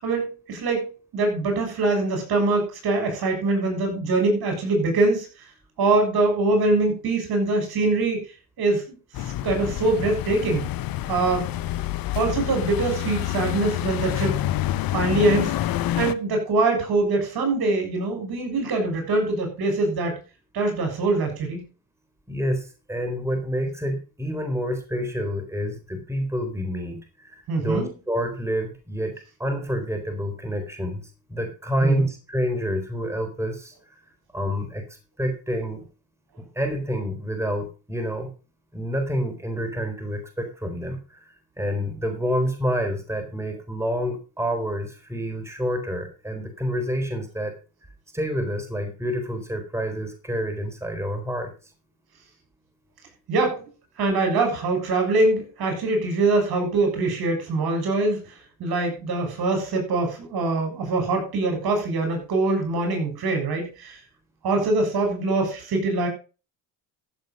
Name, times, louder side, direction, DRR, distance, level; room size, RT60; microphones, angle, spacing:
voice 1, 0.0-5.3 5.8-8.2 8.6-9.0 9.2-10.7 11.1-11.6 12.1-14.4 14.9-15.5 16.0-20.2 20.5-21.6 27.5-27.9 31.8-32.1 53.3-53.7 54.0-58.3 58.6-64.0 64.4-66.1, right 2 dB, 55° right, 4 dB, 7.1 m, -23 dB
sound 1, 9.1-16.1, left 13 dB, 50° left, 1.0 m, -27 dB
voice 2, 22.3-29.1 29.4-31.0 31.3-34.0 34.3-34.8 35.2-35.8 36.4-38.3 38.7-47.5 48.1-51.5, equal, 5° right, 5 dB, 4.1 m, -28 dB
14.0 x 7.5 x 5.5 m, 0.33 s
supercardioid pair, 85°, 44 cm